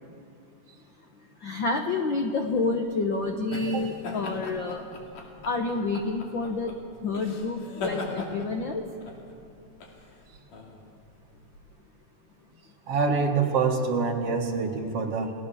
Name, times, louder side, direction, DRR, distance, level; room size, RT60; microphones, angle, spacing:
voice 1, 1.4-4.8 5.4-6.7 7.0-8.8, left 3 dB, 60° left, 4 dB, 1.2 m, -28 dB
sound 1, 2.4-11.6, left 3 dB, 80° left, 4.1 m, -40 dB
voice 2, 12.9-15.3, right 4 dB, 50° right, 2 dB, 2.5 m, -26 dB
29.5 x 18.5 x 7.0 m, 2.5 s
omnidirectional pair, 3.6 m